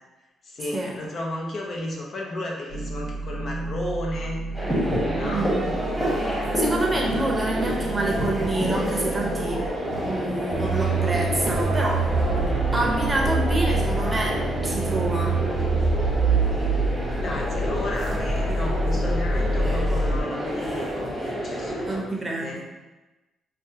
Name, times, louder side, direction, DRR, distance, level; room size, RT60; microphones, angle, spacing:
voice 1, 0.4-4.4 4.9-5.5 17.1-22.6, left 1 dB, 50° left, -1 dB, 0.8 m, -33 dB
sound 1, 2.7-9.7, right 2 dB, 85° left, 0.9 m, -32 dB
sound 2, 4.5-22.0, equal, 5° left, 1.2 m, -29 dB
voice 2, 5.2-5.6 6.5-9.7 10.0-12.1 12.7-15.4 21.9-22.7, right 2 dB, 20° right, -1 dB, 0.7 m, -27 dB
sound 3, 10.5-20.2, right 3 dB, 55° right, 0.4 m, -25 dB
5.1 x 2.3 x 2.7 m, 1.1 s
cardioid pair, 90°, 0 cm